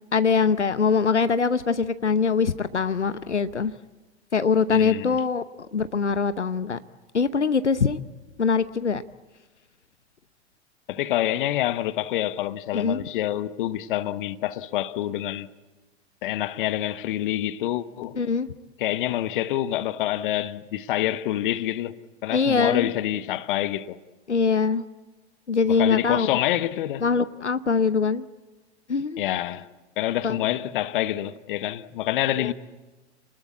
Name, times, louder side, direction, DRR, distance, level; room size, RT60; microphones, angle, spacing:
voice 1, 0.1-3.7 4.3-5.4 5.7-6.8 7.1-8.0 8.4-9.0 12.7-13.0 18.1-18.5 22.3-22.9 24.3-24.8 25.5-26.3 27.0-28.3 28.9-29.2 30.2-30.4 32.4-32.5, left 5 dB, 80° left, 0.9 m, -23 dB
voice 2, 4.7-5.2 10.9-15.5 16.2-18.2 18.8-22.0 22.2-24.0 25.8-27.0 29.2-29.7 30.0-32.5, left 13 dB, 50° left, 1.2 m, -27 dB
28.0 x 20.0 x 8.4 m
figure-of-eight pair, 100°, 34 cm